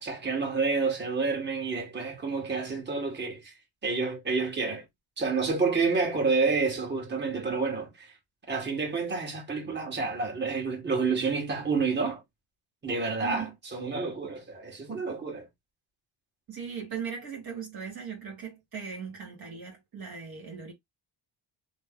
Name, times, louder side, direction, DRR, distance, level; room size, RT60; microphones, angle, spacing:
voice 1, 0.0-3.5 3.8-4.8 5.2-8.1 8.5-12.2 12.8-15.5, right 4 dB, 20° right, 1.5 m, -29 dB
voice 2, 13.2-13.5 16.5-20.7, right 6 dB, 45° right, 1.5 m, -38 dB
3.2 x 2.0 x 3.6 m
cardioid pair, 120°, 49 cm